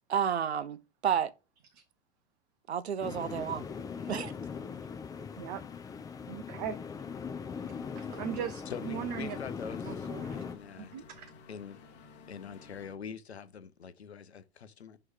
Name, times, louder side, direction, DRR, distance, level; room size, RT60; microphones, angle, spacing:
voice 1, 0.1-1.3 2.7-3.6 4.1-4.3, right 8 dB, 70° right, 0.7 m, -31 dB
sound 1, 3.0-10.6, left 6 dB, 10° left, 0.6 m, -40 dB
voice 2, 6.3-6.8 8.0-9.4 9.8-11.3, right 9 dB, 40° right, 0.8 m, -39 dB
sound 2, 7.6-13.0, left 5 dB, 30° left, 1.4 m, -54 dB
voice 3, 8.7-11.0 11.5-11.8 12.3-15.0, left 7 dB, 70° left, 0.8 m, -44 dB
6.2 x 3.2 x 4.8 m
figure-of-eight pair, 95°, 33 cm